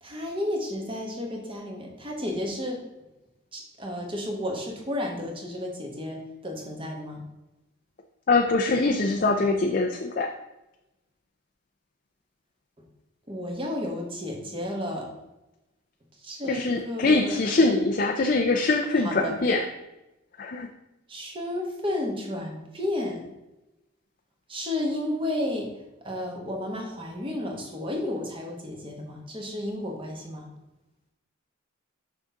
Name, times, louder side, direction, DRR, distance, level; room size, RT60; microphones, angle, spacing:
voice 1, 0.0-2.8 3.5-7.2 13.3-15.1 16.2-17.5 19.0-19.4 21.1-23.2 24.5-25.7 26.0-30.5, left 1 dB, 25° right, 0 dB, 1.4 m, -32 dB
voice 2, 8.3-10.3 16.4-19.7 20.4-20.7, left 3 dB, 40° left, 3 dB, 0.5 m, -23 dB
6.4 x 5.7 x 3.7 m, 0.98 s
head